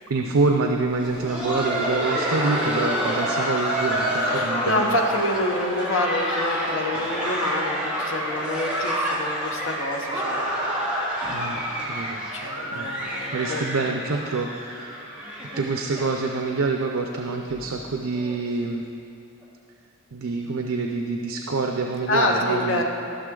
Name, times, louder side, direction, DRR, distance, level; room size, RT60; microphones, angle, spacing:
voice 1, 0.1-5.0 11.3-11.6 11.9-12.2 12.7-12.9 13.3-18.8 20.1-22.8, right 3 dB, 85° right, 3 dB, 0.6 m, -26 dB
Laughter, 0.9-16.5 16.8-16.9 17.5-17.6 18.1-18.3 19.4-19.5, equal, 5° right, 1.4 m, -28 dB
voice 2, 4.2-10.5 12.3-13.6 22.1-22.8, left 1 dB, 65° left, 1 dB, 1.0 m, -27 dB
14.0 x 6.4 x 3.8 m, 2.7 s
head